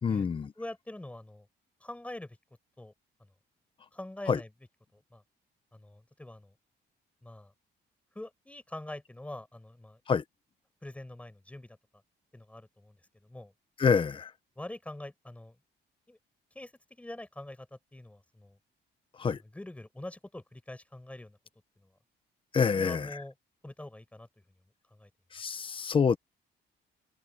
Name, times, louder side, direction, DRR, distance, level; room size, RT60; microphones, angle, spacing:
voice 1, 0.0-0.5 4.3-4.4 10.1-10.2 13.8-14.3 19.2-19.4 22.5-23.1 25.3-26.2, left 6 dB, 30° left, 0.9 m, -26 dB
voice 2, 0.6-1.5 1.8-2.4 2.8-2.9 3.2-3.3 3.9-4.5 4.9-5.2 5.7-6.5 7.2-7.5 8.2-10.0 10.8-11.8 12.3-13.5 14.6-15.6 16.1-16.2 16.6-18.6 19.3-21.4 21.8-21.9 22.7-23.3 23.6-24.3 24.9-25.1, left 1 dB, 5° left, 6.9 m, -44 dB
cardioid pair, 165°, 19 cm